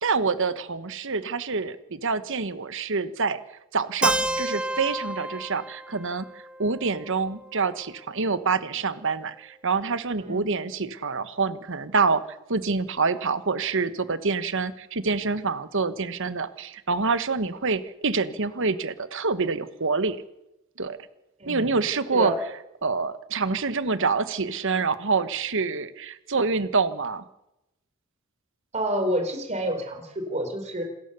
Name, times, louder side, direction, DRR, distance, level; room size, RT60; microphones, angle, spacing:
voice 1, 0.0-3.4 3.7-6.3 6.6-12.2 12.5-20.2 20.8-21.0 21.5-22.3 22.8-27.2, right 4 dB, 65° right, 12 dB, 1.3 m, -26 dB
Keyboard (musical), 4.0-7.9, right 1 dB, 5° right, 1.2 m, -31 dB
voice 2, 28.7-30.8, equal, 35° right, 4 dB, 4.1 m, -28 dB
27.0 x 14.0 x 6.9 m, 0.89 s
head